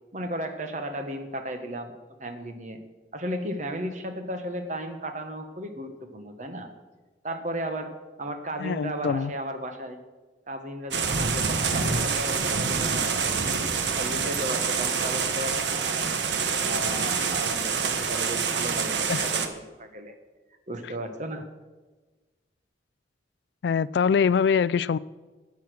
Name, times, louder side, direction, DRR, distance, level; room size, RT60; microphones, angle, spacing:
voice 1, 0.1-1.9 2.2-2.8 3.1-6.7 7.2-7.9 8.2-10.0 10.5-13.6 13.9-16.2 16.6-20.1 20.7-21.4, right 1 dB, 45° right, 6 dB, 1.3 m, -35 dB
voice 2, 8.6-9.3 19.1-19.3 23.6-25.0, left 6 dB, 70° left, 19 dB, 0.3 m, -23 dB
sound 1, 10.9-19.5, right 5 dB, 80° right, 1.1 m, -26 dB
13.0 x 8.3 x 6.3 m, 1.3 s
head